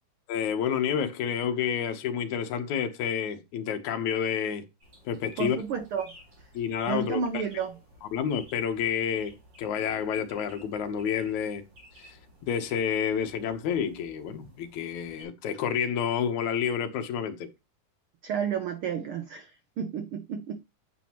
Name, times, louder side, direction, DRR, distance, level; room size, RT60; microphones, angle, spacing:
voice 1, 0.3-4.6 5.1-5.6 6.5-7.4 8.0-11.6 12.0-12.2 12.5-17.5, left 8 dB, 80° left, 2.4 m, -29 dB
sound 1, 4.8-15.2, equal, 35° right, 4.7 m, -54 dB
voice 2, 5.4-6.1 6.9-7.7 18.2-19.5 19.8-20.6, right 7 dB, 75° right, 1.2 m, -31 dB
9.0 x 7.1 x 2.9 m
omnidirectional pair, 3.3 m